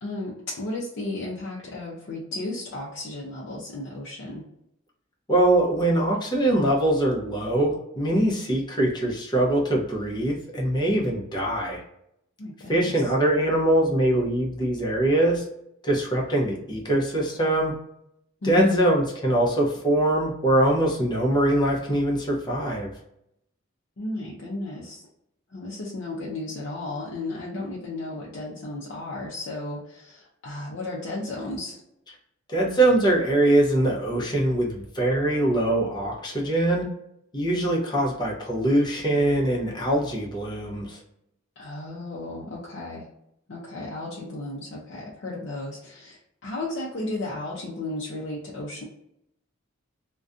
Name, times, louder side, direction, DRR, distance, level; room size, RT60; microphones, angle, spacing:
voice 1, 0.0-4.4 12.4-13.1 18.4-19.0 24.0-25.1 25.5-31.8 41.6-43.1 43.5-48.8, left 2 dB, 60° left, -4 dB, 0.5 m, -33 dB
voice 2, 5.3-11.8 12.7-15.4 15.8-17.7 18.4-22.9 32.5-36.9 37.3-41.0, right 1 dB, 20° left, -3 dB, 0.7 m, -23 dB
2.5 x 2.2 x 2.5 m, 0.77 s
head